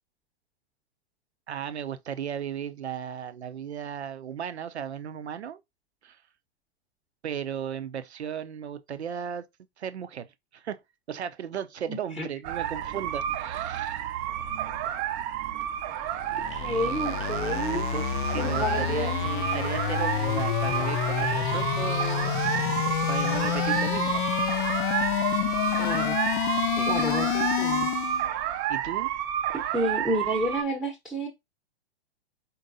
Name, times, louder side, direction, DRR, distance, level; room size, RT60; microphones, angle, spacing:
voice 1, 1.5-5.6 6.0-6.2 7.2-9.5 9.8-10.3 10.5-10.8 11.1-14.0 17.7-22.7 23.0-24.3 26.8-26.9 28.7-29.1, right 8 dB, 85° right, 0.7 m, -35 dB
voice 2, 11.9-12.3 16.5-17.8 18.4-19.2 25.8-26.2 26.9-27.9 29.5-31.3, equal, ahead, 0.8 m, -30 dB
sound 1, 12.4-30.6, right 11 dB, 30° right, 0.5 m, -30 dB
sound 2, 16.1-28.3, left 12 dB, 50° left, 0.5 m, -28 dB
4.5 x 4.0 x 2.7 m
hypercardioid pair, 115°, 32 cm